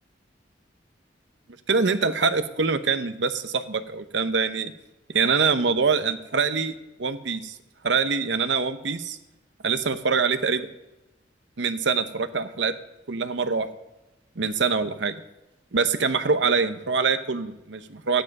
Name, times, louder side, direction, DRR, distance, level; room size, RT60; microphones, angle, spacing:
voice 1, 1.7-4.7 5.1-6.7 7.0-7.6 7.8-9.2 9.6-10.7 11.6-12.7 13.1-13.7 14.4-15.1 15.7-18.2, right 5 dB, 80° right, 10 dB, 0.8 m, -24 dB
13.0 x 10.5 x 5.4 m, 0.99 s
head